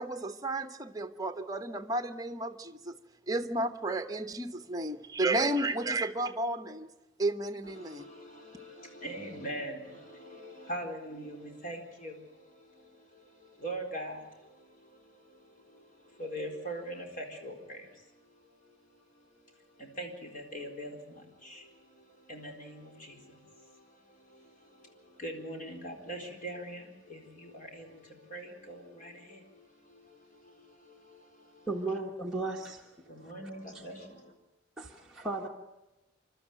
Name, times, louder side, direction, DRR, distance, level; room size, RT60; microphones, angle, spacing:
voice 1, 0.0-3.0 3.3-6.9 7.2-8.1, right 2 dB, 20° right, 1.0 m, -32 dB
voice 2, 7.6-32.0 33.1-34.3, right 1 dB, 45° left, 4.2 m, -43 dB
voice 3, 31.7-32.9 33.7-33.8 34.8-35.5, right 2 dB, ahead, 1.4 m, -35 dB
28.5 x 12.5 x 9.0 m
head